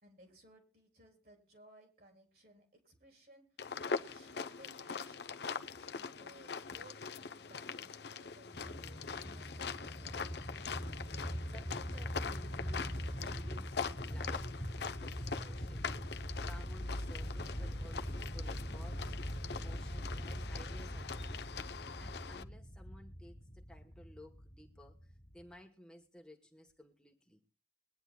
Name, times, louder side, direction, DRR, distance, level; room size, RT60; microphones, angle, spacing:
voice 1, 0.0-10.2, right 1 dB, 55° right, 2 dB, 3.8 m, -61 dB
sound 1, 3.6-22.4, left 5 dB, 65° left, 0.7 m, -43 dB
sound 2, 8.5-25.5, equal, 30° left, 1.5 m, -42 dB
voice 2, 11.2-21.5 22.0-27.4, left 1 dB, 5° left, 2 dB, 1.1 m, -57 dB
22.0 x 9.9 x 2.2 m, 0.36 s
head